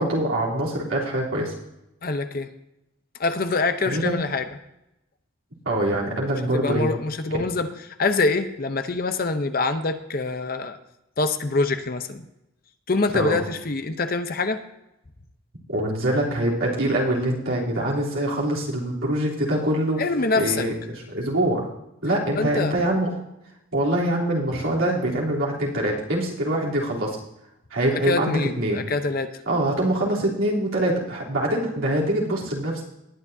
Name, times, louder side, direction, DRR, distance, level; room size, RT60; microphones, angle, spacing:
voice 1, 0.0-1.5 3.8-4.1 5.6-6.9 13.1-13.4 15.7-20.0 20.3-21.6 22.0-23.1 23.7-27.2 27.7-28.8 29.5-32.8, right 1 dB, 75° right, -5 dB, 3.2 m, -24 dB
voice 2, 2.0-2.5 3.2-4.5 6.5-10.8 11.2-12.2 12.9-14.6 20.0-20.7 22.3-22.7 27.9-29.3, left 3 dB, 45° left, 9 dB, 0.7 m, -25 dB
19.5 x 9.7 x 2.7 m, 0.87 s
head